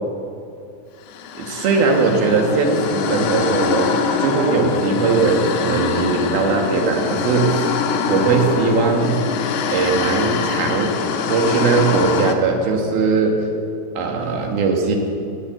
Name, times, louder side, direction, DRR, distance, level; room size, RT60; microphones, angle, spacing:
sound 1, 1.1-12.3, left 6 dB, 75° left, 2.7 m, -24 dB
voice 1, 1.3-7.7 8.1-9.2 9.7-11.0 11.3-13.5 13.9-15.0, right 4 dB, 65° right, 2 dB, 3.2 m, -19 dB
17.5 x 7.0 x 8.7 m, 2.5 s
omnidirectional pair, 5.1 m